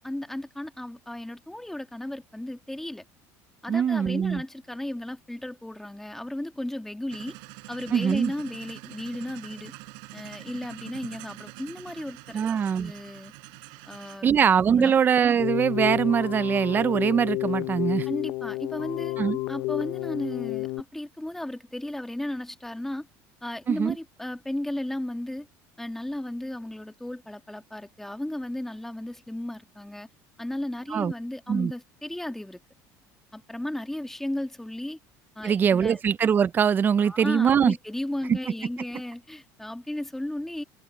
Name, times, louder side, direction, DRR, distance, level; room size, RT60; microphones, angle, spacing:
voice 1, 0.0-3.0 3.6-7.4 7.7-9.7 10.1-13.3 13.9-14.5 14.8-15.0 18.1-19.2 19.5-23.1 23.4-25.5 25.8-30.1 30.4-32.6 33.3-35.0 35.4-36.0 37.0-40.6, left 1 dB, 5° left, 1.7 m, -35 dB
voice 2, 3.7-4.4 7.9-8.3 12.3-12.9 14.2-18.1 19.2-19.4 23.7-24.0 30.9-31.1 31.5-31.7 35.4-37.7 38.3-38.4, right 7 dB, 25° right, 0.5 m, -22 dB
sound 1, 7.1-14.3, right 35 dB, 80° right, 5.0 m, -45 dB
Keyboard (musical), 15.4-20.8, left 20 dB, 70° left, 0.6 m, -31 dB
cardioid pair, 140°, 7 cm